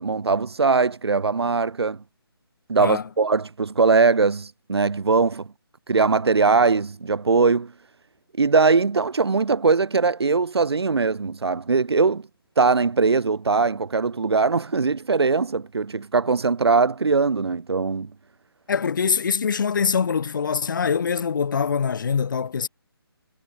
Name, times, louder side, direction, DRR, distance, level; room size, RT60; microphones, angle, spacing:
voice 1, 0.0-2.0 2.7-5.5 5.9-7.7 8.4-12.2 12.6-18.1, right 4 dB, 90° right, 0.7 m, -21 dB
voice 2, 2.8-3.1 18.7-22.7, left 6 dB, 50° left, 3.7 m, -23 dB
figure-of-eight pair, 155°, 13 cm